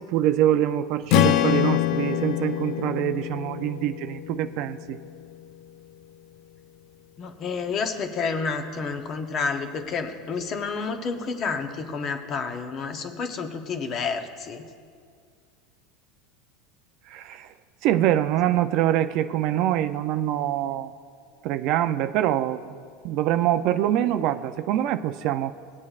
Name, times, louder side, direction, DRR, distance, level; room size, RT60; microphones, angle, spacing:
voice 1, 0.0-5.0 17.1-17.5 17.8-20.9 21.4-25.5, right 12 dB, 50° right, 11 dB, 0.4 m, -24 dB
Strum, 1.1-5.4, left 12 dB, 55° left, 0.4 m, -25 dB
voice 2, 7.2-14.7, left 5 dB, 35° left, 6 dB, 0.8 m, -30 dB
19.0 x 8.4 x 2.4 m, 2.1 s
supercardioid pair, 140°, 0 cm